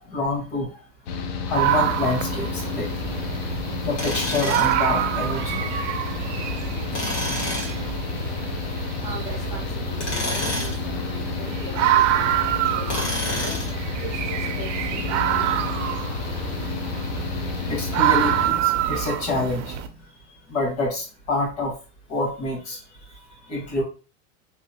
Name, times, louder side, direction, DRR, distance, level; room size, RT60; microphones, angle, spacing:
voice 1, 0.1-0.7 1.5-2.9 3.8-5.6 17.7-19.8 20.5-21.7 22.1-22.8 23.5-23.8, left 2 dB, 40° left, 0 dB, 1.3 m, -26 dB
Mechanical fan, 1.1-18.5, left 5 dB, 60° left, 0.5 m, -31 dB
sound 1, 1.5-19.9, right 11 dB, 90° right, 0.6 m, -27 dB
Tools, 4.0-4.8 6.9-7.8 9.9-10.8 12.9-13.8, left 2 dB, 85° left, 1.8 m, -28 dB
voice 2, 9.0-15.7, right 2 dB, 10° right, -6 dB, 0.4 m, -40 dB
2.9 x 2.6 x 2.7 m, 0.33 s
supercardioid pair, 175°, 35 cm